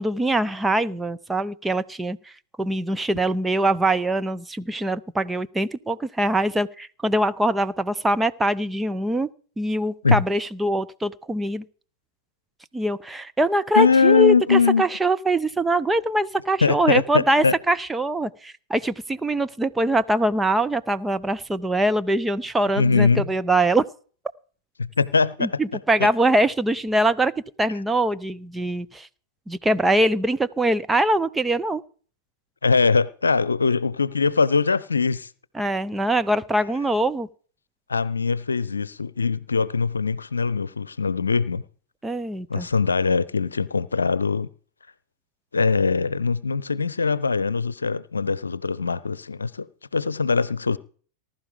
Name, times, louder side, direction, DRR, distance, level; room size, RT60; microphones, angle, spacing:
voice 1, 0.0-2.2 2.6-9.3 9.6-11.6 12.7-23.8 25.4-27.3 27.6-29.1 29.5-31.8 35.5-37.3 42.0-42.7, right 1 dB, 10° right, 0.8 m, -23 dB
voice 2, 13.7-14.8 16.6-17.5 22.8-23.3 24.8-25.6 26.0-26.1 32.6-35.3 37.9-41.6 42.5-44.5 45.5-49.7 49.9-50.8, left 4 dB, 75° left, 0.7 m, -21 dB
19.5 x 12.0 x 5.1 m
figure-of-eight pair, 90°, 0 cm